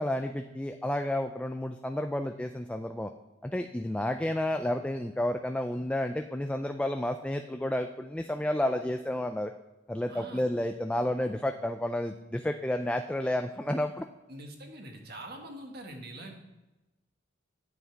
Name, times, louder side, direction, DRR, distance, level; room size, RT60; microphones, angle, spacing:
voice 1, 0.0-3.1 3.4-9.5 9.9-14.1, left 1 dB, 5° left, 5 dB, 0.3 m, -31 dB
voice 2, 10.1-10.4 14.3-16.4, right 1 dB, 55° right, 3 dB, 1.6 m, -44 dB
10.0 x 8.0 x 4.5 m, 1.1 s
head